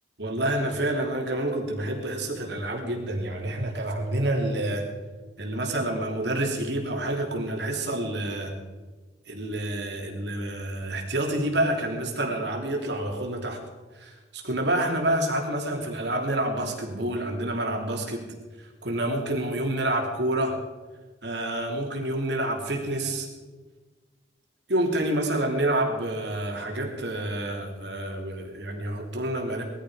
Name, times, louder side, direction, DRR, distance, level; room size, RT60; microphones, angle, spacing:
voice 1, 0.2-4.9 5.4-8.5 9.3-13.6 13.9-18.2 18.6-20.5 21.2-23.3 24.7-29.6, right 1 dB, 70° right, 1 dB, 3.2 m, -28 dB
19.5 x 14.0 x 5.1 m, 1.3 s
head